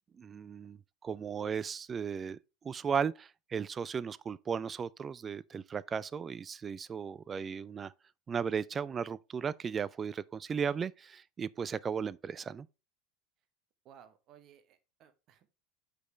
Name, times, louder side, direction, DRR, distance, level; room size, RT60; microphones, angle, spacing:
voice 1, 0.2-2.4 2.6-7.9 8.3-12.7, right 6 dB, 25° right, 0.3 m, -36 dB
voice 2, 13.8-15.5, right 9 dB, 45° right, 1.0 m, -59 dB
8.0 x 5.0 x 3.3 m
figure-of-eight pair, 75°, 0 cm